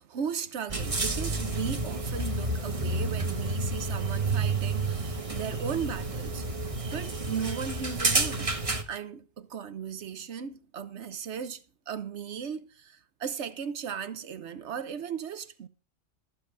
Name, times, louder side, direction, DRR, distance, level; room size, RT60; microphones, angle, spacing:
voice 1, 0.0-8.5 8.9-15.7, right 7 dB, 70° right, 1.2 m, -36 dB
sound 1, 0.7-8.8, right 3 dB, 30° right, 1.3 m, -30 dB
14.5 x 5.2 x 7.4 m
omnidirectional pair, 1.2 m